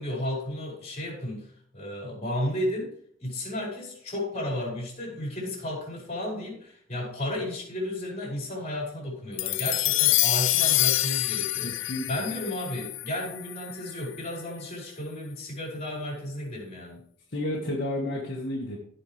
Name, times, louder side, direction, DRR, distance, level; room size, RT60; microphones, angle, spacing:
voice 1, 0.0-2.9 3.2-17.0, left 1 dB, 35° left, -2 dB, 5.1 m, -33 dB
sound 1, 9.4-13.9, left 16 dB, 80° left, 0.5 m, -26 dB
voice 2, 11.6-12.1 17.3-18.8, left 1 dB, 55° left, -3 dB, 1.8 m, -31 dB
16.5 x 5.8 x 3.4 m, 0.63 s
head